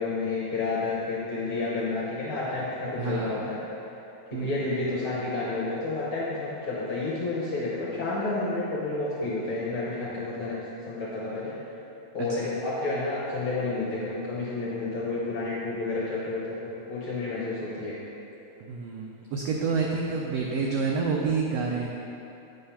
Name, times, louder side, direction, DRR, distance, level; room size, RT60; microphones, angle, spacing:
voice 1, 0.0-3.6 4.3-10.6 10.8-11.5 12.1-18.0, left 3 dB, 65° left, -7 dB, 1.4 m, -30 dB
voice 2, 3.0-3.6 4.3-4.6 12.2-12.5 18.6-21.9, right 4 dB, 85° right, -1 dB, 1.4 m, -29 dB
8.8 x 3.8 x 5.6 m, 3.0 s
omnidirectional pair, 3.5 m